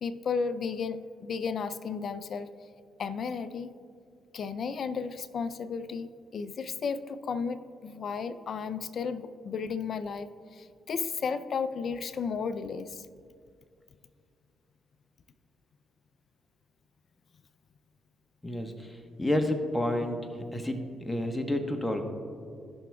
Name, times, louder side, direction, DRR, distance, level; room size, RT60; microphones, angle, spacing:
voice 1, 0.0-2.5 3.0-3.7 4.3-13.1, left 5 dB, 60° left, 14 dB, 0.5 m, -34 dB
voice 2, 18.4-18.9 19.2-20.2 20.5-22.0, left 1 dB, 15° left, 4 dB, 1.2 m, -29 dB
17.5 x 6.1 x 2.3 m, 2.3 s
hypercardioid pair, 50°, 0 cm